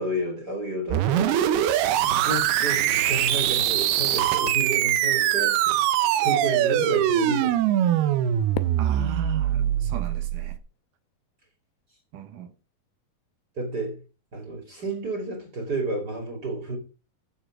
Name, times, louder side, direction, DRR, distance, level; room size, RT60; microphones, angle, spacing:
voice 1, 0.0-1.4 2.0-5.8 6.2-7.9 13.6-14.0 14.3-16.8, right 2 dB, 30° right, 2.3 m, -31 dB
sound 1, 0.9-10.6, right 11 dB, 85° right, 2.8 m, -23 dB
Fireworks, 8.5-10.9, left 12 dB, 85° left, 2.5 m, -40 dB
voice 2, 8.8-10.6 12.1-12.5, right 8 dB, 70° right, 2.3 m, -36 dB
11.5 x 7.1 x 4.8 m
omnidirectional pair, 4.4 m